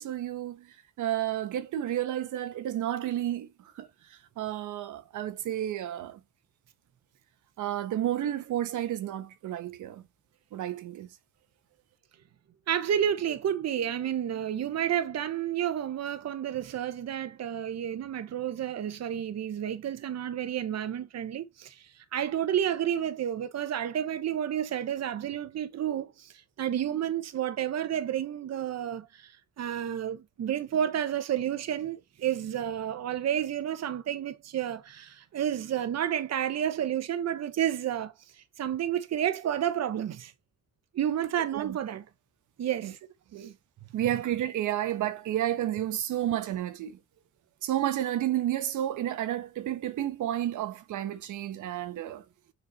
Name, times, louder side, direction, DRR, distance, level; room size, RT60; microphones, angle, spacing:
voice 1, 0.0-6.2 7.6-10.0 10.5-11.1 41.5-41.8 42.8-42.9 43.3-43.5 43.9-47.0 47.6-52.2, right 12 dB, 80° right, 1.3 m, -31 dB
voice 2, 12.7-40.3 40.9-42.0 42.6-43.0 43.4-43.5, right 10 dB, 60° right, 1.2 m, -31 dB
7.1 x 4.7 x 4.4 m
cardioid pair, 90°, 30 cm